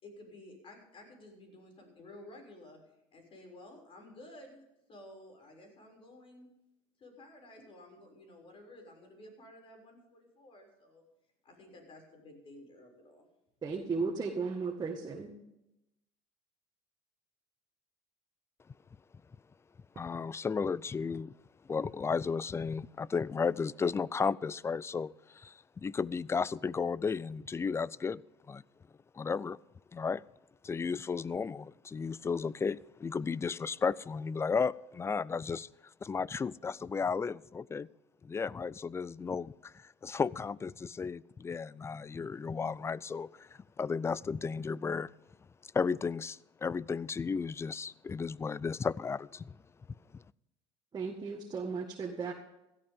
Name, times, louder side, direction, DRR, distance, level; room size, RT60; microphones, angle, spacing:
voice 1, 0.0-2.8 3.1-6.5 7.0-11.0 11.4-13.3, left 1 dB, 40° left, 6.5 m, -53 dB
voice 2, 13.6-15.3 50.9-52.3, right 4 dB, 30° right, 1.9 m, -35 dB
voice 3, 20.0-21.3 21.7-28.2 28.5-28.6 29.1-29.6 29.9-30.2 30.6-35.7 36.0-37.9 38.2-45.1 45.7-49.6 50.1-50.2, left 5 dB, 20° left, 0.4 m, -34 dB
16.5 x 13.5 x 3.7 m
supercardioid pair, 95°, 14 cm